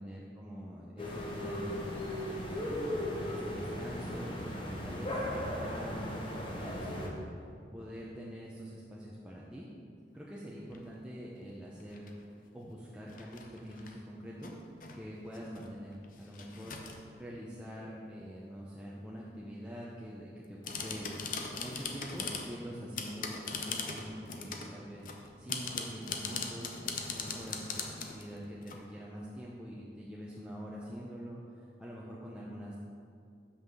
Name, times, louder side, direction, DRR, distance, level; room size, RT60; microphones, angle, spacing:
voice 1, 0.0-2.9 3.3-7.2 7.7-9.7 10.1-12.2 12.5-14.6 14.9-16.8 17.2-21.1 21.6-25.1 25.4-26.8 27.1-32.8, equal, 5° right, -6 dB, 0.6 m, -45 dB
sound 1, 1.0-7.1, left 1 dB, 30° left, 1.0 m, -37 dB
sound 2, 10.7-11.0 11.8-12.1 13.1-14.0 14.4-15.0 15.3-17.0 20.4-22.5 23.0-24.8 25.1-28.8, left 5 dB, 50° left, 0.7 m, -40 dB
5.7 x 5.6 x 6.8 m, 2.4 s
head